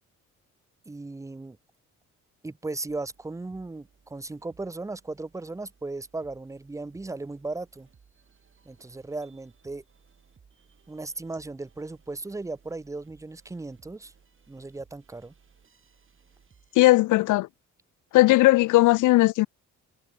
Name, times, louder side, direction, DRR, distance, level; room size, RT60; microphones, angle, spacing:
voice 1, 0.9-1.6 2.4-7.9 8.6-9.8 10.9-14.1 14.5-15.3, right 3 dB, 10° right, 0.6 m, -36 dB
sound 1, 2.9-17.0, right 6 dB, 40° right, 6.4 m, -61 dB
voice 2, 16.8-17.5 18.1-19.5, left 18 dB, 80° left, 0.5 m, -18 dB
cardioid pair, 90°, 30 cm